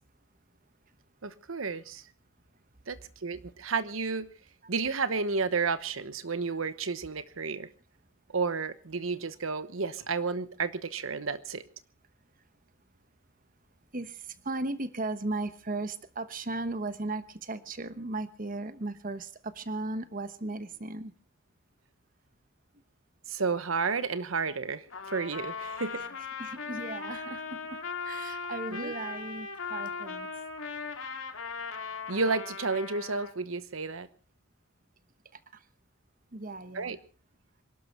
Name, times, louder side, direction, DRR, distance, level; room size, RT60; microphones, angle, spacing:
voice 1, 1.2-2.1 2.9-4.3 4.7-7.7 8.3-11.6 23.3-26.1 28.7-28.9 32.1-34.1 36.7-37.0, right 4 dB, 90° right, 1.1 m, -31 dB
voice 2, 13.9-21.1 26.0-26.1 26.4-27.8 28.0-30.3 35.3-35.6 36.3-37.0, right 2 dB, 45° right, 1.2 m, -36 dB
Trumpet, 24.9-33.3, left 5 dB, 90° left, 2.3 m, -38 dB
26.5 x 12.0 x 4.5 m
head